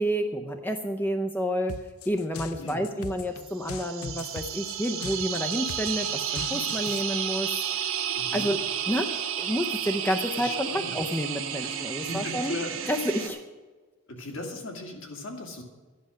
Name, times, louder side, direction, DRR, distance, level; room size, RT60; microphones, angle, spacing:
voice 1, 0.0-1.8 2.1-7.9 8.3-12.6 12.8-13.4, equal, 10° left, 5 dB, 0.5 m, -30 dB
sound 1, 1.7-7.0, left 6 dB, 75° left, 0.6 m, -40 dB
sound 2, 3.5-13.3, right 9 dB, 65° right, 1.3 m, -32 dB
voice 2, 8.1-8.5 10.3-11.0 11.6-12.7 14.1-15.6, left 2 dB, 60° left, 2 dB, 2.3 m, -38 dB
12.5 x 10.0 x 6.3 m, 1.4 s
head